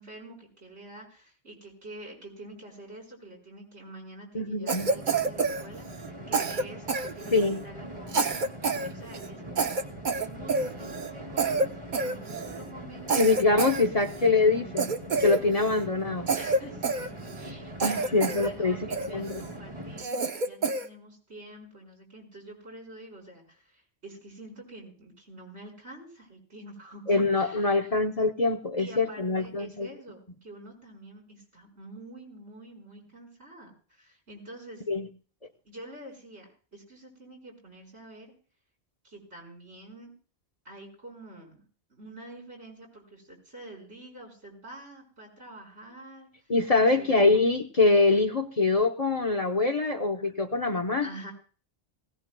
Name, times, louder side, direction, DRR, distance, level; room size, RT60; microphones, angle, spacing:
voice 1, 0.0-9.8 10.2-13.2 14.2-14.8 16.3-27.9 28.8-34.9 35.6-38.3 39.0-40.1 40.6-41.6 41.9-47.2 50.3-50.4 51.0-51.3, right 1 dB, 80° right, -1 dB, 5.7 m, -47 dB
voice 2, 4.3-4.9 7.3-7.6 13.1-14.9 15.2-16.3 17.8-19.4 27.1-29.9 34.9-35.1 46.5-51.1, left 3 dB, 35° left, 4 dB, 0.9 m, -24 dB
Cough, 4.7-6.1 6.3-7.6 8.1-8.9 9.1-9.3 9.6-11.1 11.4-11.7 11.9-12.6 13.1-14.3 14.8-15.8 16.3-17.5 17.8-18.5 18.9-19.5 20.0-20.9, right 3 dB, 50° right, 0.9 m, -28 dB
sound 1, 4.8-20.0, right 1 dB, 25° right, 2.3 m, -42 dB
19.5 x 17.5 x 2.3 m, 0.39 s
omnidirectional pair, 1.1 m